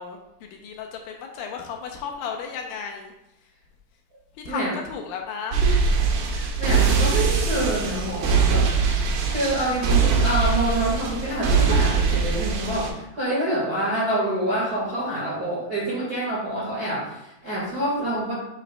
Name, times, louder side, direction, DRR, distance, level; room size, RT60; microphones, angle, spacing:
voice 1, 0.0-3.1 4.4-5.6, left 6 dB, 80° left, 2 dB, 2.3 m, -34 dB
Large Machine Walking, 5.5-12.9, right 5 dB, 80° right, 2.8 m, -22 dB
voice 2, 6.2-8.7 9.3-18.3, right 1 dB, 45° right, -7 dB, 1.3 m, -27 dB
9.2 x 5.2 x 2.2 m, 0.87 s
omnidirectional pair, 4.2 m